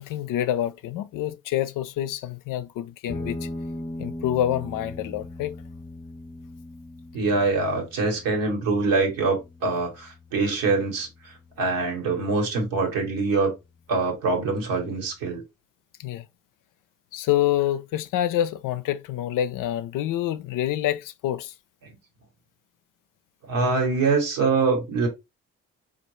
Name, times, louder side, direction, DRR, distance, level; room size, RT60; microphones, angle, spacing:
voice 1, 0.0-3.5 4.0-5.6 16.0-16.2 17.1-21.5, left 12 dB, 65° left, 0.5 m, -27 dB
sound 1, 3.1-12.1, left 1 dB, 10° left, 0.6 m, -39 dB
voice 2, 7.1-13.5 13.9-15.4 21.8-21.9 23.5-25.1, right 3 dB, 80° right, 1.4 m, -24 dB
4.4 x 2.4 x 3.0 m
hypercardioid pair, 45°, 34 cm